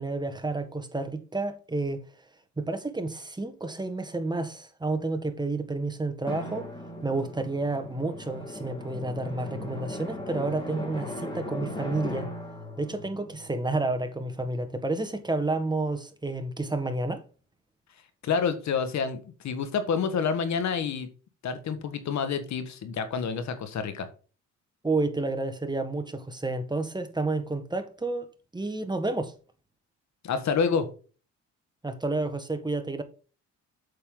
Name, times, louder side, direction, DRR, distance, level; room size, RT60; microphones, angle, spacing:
voice 1, 0.0-2.0 2.6-6.6 7.0-12.3 12.8-17.2 24.8-28.3 28.5-29.3 31.8-33.0, right 2 dB, 15° right, 1.5 m, -30 dB
Drum, 6.3-14.6, left 1 dB, 15° left, 4.1 m, -38 dB
voice 2, 18.2-21.1 21.4-24.1 30.2-30.9, left 6 dB, 65° left, 1.6 m, -28 dB
8.4 x 6.8 x 3.8 m
cardioid pair, 90°, 30 cm